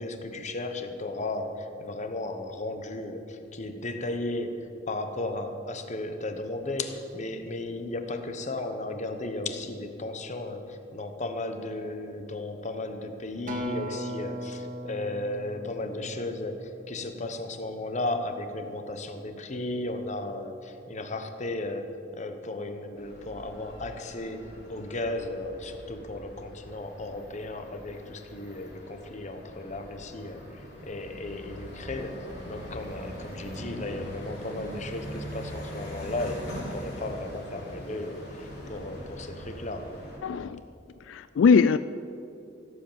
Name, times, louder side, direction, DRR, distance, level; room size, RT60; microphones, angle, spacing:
voice 1, 0.0-40.0, left 2 dB, 40° left, 7 dB, 1.0 m, -35 dB
Acoustic guitar, 13.5-17.9 18.5-18.7, right 1 dB, 45° right, 1.7 m, -39 dB
sound 1, 23.0-40.2, equal, 60° left, 4.1 m, -42 dB
voice 2, 40.2-40.6 41.1-41.8, left 5 dB, 85° left, 13 dB, 0.3 m, -21 dB
16.5 x 7.9 x 7.4 m, 2.7 s
head